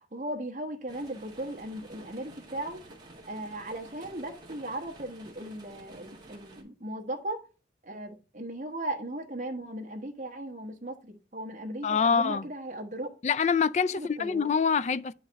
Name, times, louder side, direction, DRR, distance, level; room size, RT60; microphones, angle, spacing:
voice 1, 0.0-2.8 3.3-7.4 7.8-13.1 13.9-14.5, right 1 dB, 40° right, 1.1 m, -37 dB
sound 1, 0.9-6.6, right 2 dB, 25° right, 1.5 m, -51 dB
voice 2, 11.8-12.5 13.2-15.1, left 6 dB, 40° left, 0.3 m, -25 dB
8.9 x 4.6 x 3.3 m
head